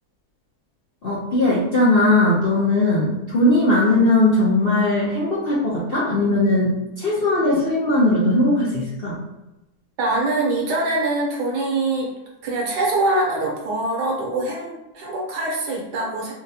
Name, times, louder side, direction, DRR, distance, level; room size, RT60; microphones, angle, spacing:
voice 1, 1.0-9.2, left 2 dB, 55° left, -7 dB, 0.6 m, -19 dB
voice 2, 10.0-12.1 12.4-16.3, right 2 dB, 80° right, -2 dB, 1.5 m, -23 dB
4.0 x 2.2 x 2.7 m, 0.98 s
omnidirectional pair, 1.8 m